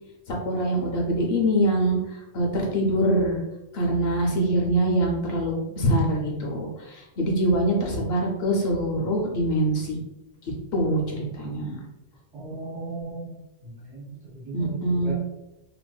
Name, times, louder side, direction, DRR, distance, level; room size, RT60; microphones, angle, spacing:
voice 1, 0.3-3.4 3.7-10.0 10.7-11.8 14.5-15.1, right 1 dB, 60° left, -1 dB, 0.8 m, -24 dB
voice 2, 12.3-13.3 13.6-14.1 14.3-15.1, right 3 dB, 65° right, -6 dB, 1.4 m, -36 dB
2.9 x 2.5 x 2.2 m, 0.95 s
omnidirectional pair, 1.4 m